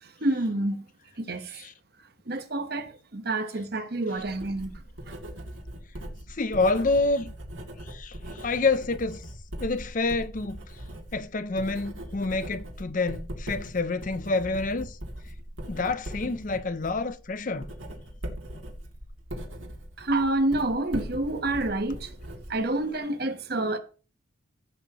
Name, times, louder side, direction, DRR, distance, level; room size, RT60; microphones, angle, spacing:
voice 1, 0.0-0.8 1.2-1.7 2.3-5.2 20.0-23.8, right 2 dB, 50° right, 1.2 m, -29 dB
Writing, 4.2-23.0, equal, 75° right, 2.6 m, -40 dB
voice 2, 6.3-7.3 7.8-9.3 9.6-10.6 11.1-15.0 15.7-17.7, left 3 dB, 40° left, 0.6 m, -28 dB
16.0 x 8.3 x 3.0 m
head